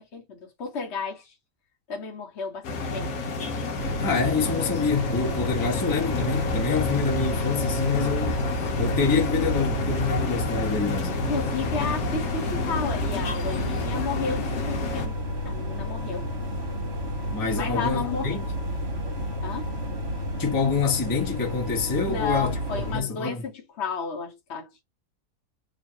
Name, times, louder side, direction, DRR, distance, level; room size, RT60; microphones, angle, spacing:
voice 1, 0.0-1.3 1.9-2.6 2.9-3.1 5.6-5.7 11.1-15.2 15.4-16.2 17.5-18.3 19.4-19.7 22.1-24.8, left 5 dB, 45° left, 1.1 m, -32 dB
sound 1, 2.6-15.1, left 2 dB, 70° left, 1.2 m, -30 dB
sound 2, 3.8-23.0, equal, 40° right, 1.3 m, -31 dB
voice 2, 4.0-8.4 8.8-11.1 17.3-18.4 20.4-23.4, left 5 dB, 20° left, 0.7 m, -26 dB
3.0 x 2.5 x 4.4 m
omnidirectional pair, 1.8 m